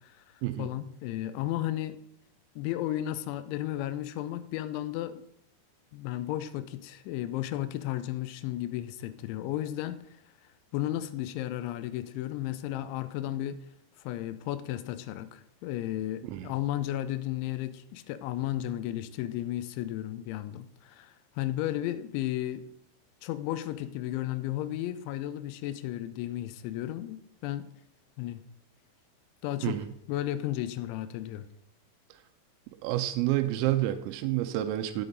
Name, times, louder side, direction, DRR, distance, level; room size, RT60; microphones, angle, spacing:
voice 1, 0.0-2.0 2.6-5.2 5.9-10.0 10.7-13.6 14.0-22.7 23.2-27.7 28.2-28.4 29.4-29.8 30.1-31.5, left 13 dB, 90° left, 11 dB, 2.6 m, -34 dB
voice 2, 32.8-35.1, right 14 dB, 85° right, 7 dB, 3.3 m, -29 dB
9.3 x 7.8 x 3.9 m, 0.70 s
omnidirectional pair, 6.0 m